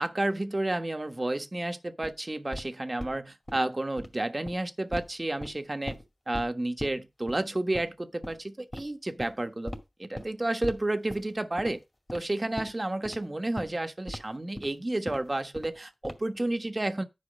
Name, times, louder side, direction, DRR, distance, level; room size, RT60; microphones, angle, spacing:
voice 1, 0.0-6.0 6.3-11.8 12.1-17.0, right 1 dB, 35° right, 1.3 m, -31 dB
sound 1, 2.0-2.1 2.5-2.6 3.0-3.2 3.5-3.6 3.9-4.1 4.4-4.6 4.9-5.1 5.4-6.0 6.3-6.5 6.8-6.9 7.3-7.4 7.7-7.9 8.2-8.3 8.7-8.8 9.2-9.3 9.7-9.8 10.1-10.3 10.6-10.8 11.1-11.3 11.6-11.7 12.1-12.2 12.6-12.7 13.0-13.2 13.6-13.7 14.1-14.2 14.5-14.7 15.1-15.2 15.5-15.8 16.0-16.4, left 1 dB, 20° left, 2.3 m, -38 dB
10.5 x 4.9 x 5.3 m
cardioid pair, 45°, 0 cm